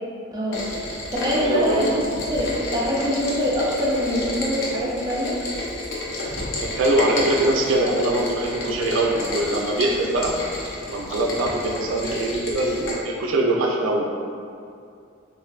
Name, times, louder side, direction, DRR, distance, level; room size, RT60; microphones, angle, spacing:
voice 1, 0.3-0.7 1.1-5.4, equal, 20° right, -5 dB, 0.4 m, -24 dB
Rain, 0.5-12.9, left 1 dB, 90° left, 0.6 m, -31 dB
voice 2, 1.4-2.0 6.6-10.4 10.9-14.1, right 1 dB, 90° right, 0 dB, 0.4 m, -23 dB
3.0 x 2.5 x 2.4 m, 2.4 s
head